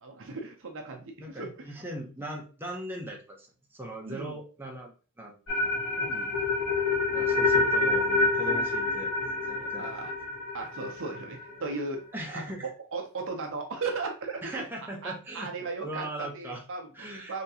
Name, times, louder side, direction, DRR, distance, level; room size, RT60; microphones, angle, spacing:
voice 1, 0.0-1.8 4.0-4.4 6.0-6.4 7.1-7.2 8.6-8.7 9.6-10.1 10.5-12.0 12.3-14.6 15.0-17.4, right 3 dB, 60° right, 3 dB, 0.7 m, -37 dB
voice 2, 1.2-3.5 3.7-5.3 7.1-9.9 12.1-12.7 14.4-15.5 15.8-16.6 16.9-17.4, right 1 dB, 10° right, -1 dB, 0.8 m, -39 dB
sound 1, 5.5-11.6, left 3 dB, 70° left, 1.6 m, -27 dB
3.5 x 2.9 x 2.8 m, 0.35 s
head